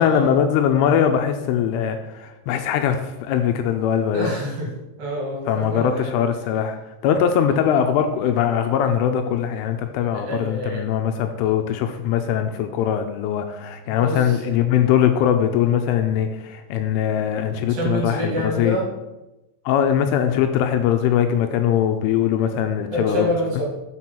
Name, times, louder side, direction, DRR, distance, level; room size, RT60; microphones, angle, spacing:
voice 1, 0.0-4.4 5.5-6.8 7.0-18.8 19.7-23.3, left 9 dB, 85° left, 6 dB, 3.0 m, -21 dB
voice 2, 4.1-4.7 5.0-6.2 7.5-7.7 10.3-10.8 13.9-14.4 17.7-18.9 22.9-23.6, equal, 60° right, -3 dB, 3.8 m, -27 dB
7.5 x 6.2 x 5.8 m, 1.0 s
omnidirectional pair, 5.9 m